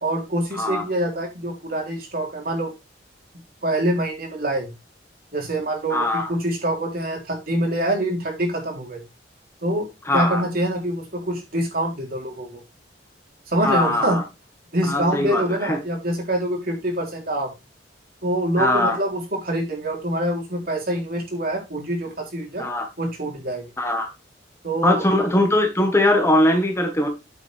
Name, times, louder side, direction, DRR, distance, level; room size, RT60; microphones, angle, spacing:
voice 1, 0.0-2.7 3.6-4.7 5.3-9.0 9.6-9.9 10.1-12.6 13.5-14.2 14.7-17.5 18.2-22.7 23.0-23.7 24.6-25.0, right 1 dB, 50° right, 1 dB, 3.5 m, -25 dB
voice 2, 0.5-0.8 5.9-6.3 10.0-10.4 13.6-14.2 14.8-15.8 18.6-19.0 22.6-22.9 23.8-24.1 24.8-27.1, left 1 dB, 15° left, 4 dB, 1.4 m, -21 dB
8.3 x 8.1 x 3.5 m, 0.25 s
head